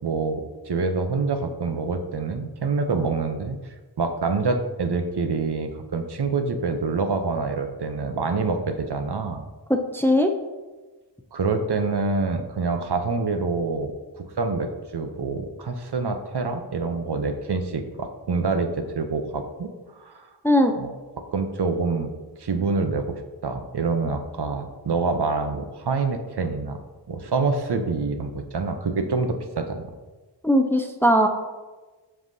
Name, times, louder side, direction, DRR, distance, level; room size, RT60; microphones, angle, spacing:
voice 1, 0.0-3.6 4.0-9.5 11.3-19.7 20.0-20.3 20.7-21.0 21.3-22.1 22.4-26.8 27.1-29.9, right 4 dB, 65° right, 7 dB, 0.7 m, -26 dB
voice 2, 9.7-10.3 20.4-20.7 30.4-31.3, equal, 5° left, 5 dB, 0.4 m, -19 dB
7.8 x 5.5 x 2.7 m, 1.2 s
wide cardioid pair, 65°, 43 cm